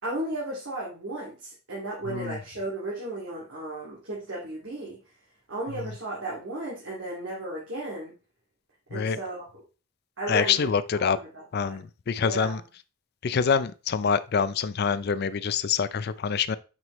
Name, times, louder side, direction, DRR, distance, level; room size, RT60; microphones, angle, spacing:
voice 1, 0.0-5.0 5.5-8.2 8.9-9.6 10.2-11.8 12.2-12.6, right 2 dB, 65° right, -6 dB, 2.3 m, -35 dB
voice 2, 10.3-11.2 11.5-12.6 13.2-16.6, left 6 dB, 50° left, 15 dB, 0.4 m, -26 dB
6.0 x 5.5 x 3.0 m, 0.32 s
head